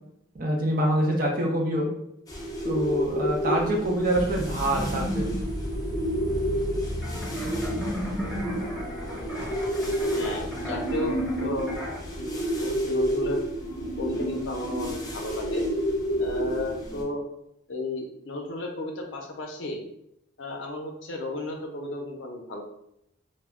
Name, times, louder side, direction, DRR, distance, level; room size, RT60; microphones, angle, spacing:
voice 1, 0.3-1.9 2.6-5.3, right 1 dB, 45° right, 0 dB, 0.5 m, -25 dB
sound 1, 2.3-17.0, equal, 20° left, 0.4 m, -30 dB
sound 2, 4.1-12.6, equal, 70° right, 0.9 m, -37 dB
sound 3, 7.0-12.0, left 1 dB, 5° left, 0.8 m, -38 dB
voice 2, 10.2-11.7 12.2-13.4 14.0-15.6 16.2-17.2 17.7-19.8 20.4-22.6, left 2 dB, 70° left, 2 dB, 0.5 m, -33 dB
2.1 x 2.1 x 3.5 m, 0.76 s
head